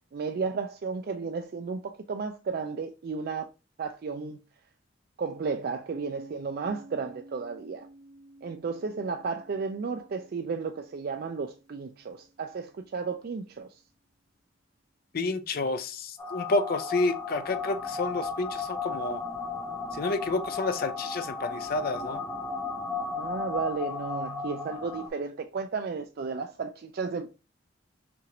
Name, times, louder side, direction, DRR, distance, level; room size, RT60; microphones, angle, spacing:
voice 1, 0.1-3.5 3.8-4.4 5.2-7.9 8.4-13.7 23.1-27.3, right 5 dB, 55° right, 0.4 m, -33 dB
Piano, 5.9-13.1, right 1 dB, 90° right, 1.5 m, -52 dB
voice 2, 15.1-19.2 19.9-22.2, left 3 dB, 50° left, 0.5 m, -30 dB
sound 1, 16.2-25.1, left 4 dB, 15° left, 0.9 m, -35 dB
5.9 x 2.5 x 2.9 m
head